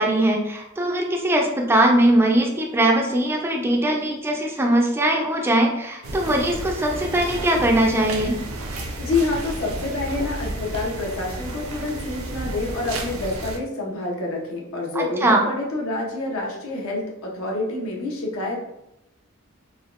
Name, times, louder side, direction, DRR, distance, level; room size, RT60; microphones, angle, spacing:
voice 1, 0.0-8.4 14.9-15.4, right 1 dB, 10° right, 1 dB, 0.3 m, -20 dB
sound 1, 6.0-13.6, right 1 dB, 80° right, 0.5 m, -32 dB
voice 2, 9.0-18.6, left 2 dB, 75° left, -2 dB, 0.8 m, -27 dB
3.4 x 2.2 x 2.4 m, 0.83 s
head